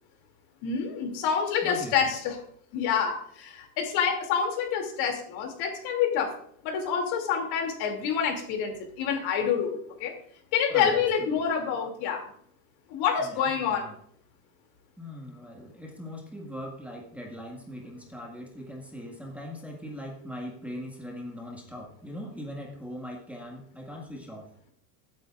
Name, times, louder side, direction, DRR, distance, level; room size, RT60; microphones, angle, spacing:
voice 1, 0.6-2.4 2.7-6.3 6.6-10.1 10.5-12.2 12.9-13.9, left 7 dB, 55° left, 4 dB, 2.7 m, -27 dB
voice 2, 1.6-2.1 10.7-11.4 13.2-13.9 15.0-24.5, equal, 5° right, -2 dB, 1.7 m, -40 dB
16.5 x 9.1 x 2.5 m, 0.64 s
supercardioid pair, 130°, 45 cm